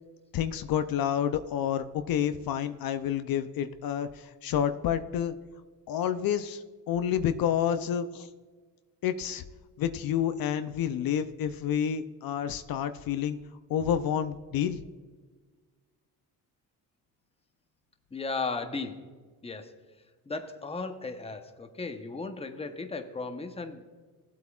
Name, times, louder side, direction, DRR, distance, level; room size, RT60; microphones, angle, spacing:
voice 1, 0.3-5.4 5.9-8.3 9.0-9.4 9.8-13.4 13.7-14.8, left 9 dB, 65° left, 9 dB, 0.6 m, -29 dB
voice 2, 18.1-19.1 19.4-19.7 20.3-23.8, left 3 dB, 15° left, 6 dB, 0.9 m, -36 dB
16.0 x 8.1 x 2.4 m, 1.4 s
cardioid pair, 95°, 38 cm